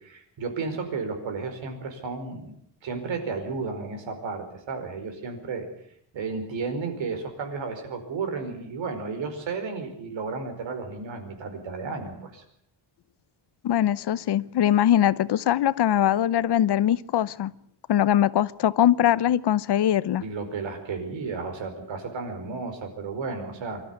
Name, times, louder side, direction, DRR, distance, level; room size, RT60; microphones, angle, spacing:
voice 1, 0.0-2.5 2.8-5.7 6.1-12.4 20.2-23.8, right 4 dB, 80° right, 6 dB, 5.1 m, -33 dB
voice 2, 13.6-17.5 17.9-20.2, left 11 dB, 65° left, 18 dB, 0.8 m, -22 dB
24.5 x 13.0 x 9.5 m, 0.68 s
wide cardioid pair, 145°, 45 cm